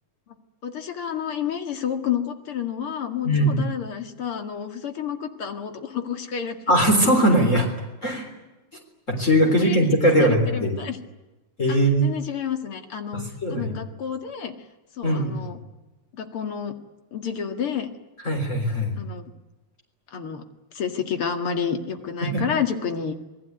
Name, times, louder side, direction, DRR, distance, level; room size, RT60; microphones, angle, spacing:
voice 1, 0.6-6.6 9.4-11.0 11.7-13.2 13.5-14.5 15.0-15.6 16.1-16.7 17.1-17.9 19.0-19.3 20.1-20.4 20.7-23.1, left 7 dB, 90° left, 6 dB, 2.9 m, -30 dB
voice 2, 3.2-3.6 6.7-7.7 8.0-8.3 9.1-10.8 11.6-12.1 13.1-13.7 15.0-15.3 18.2-19.0 22.2-22.4, equal, 35° left, 1 dB, 4.1 m, -20 dB
28.0 x 19.5 x 9.5 m, 1.1 s
omnidirectional pair, 2.3 m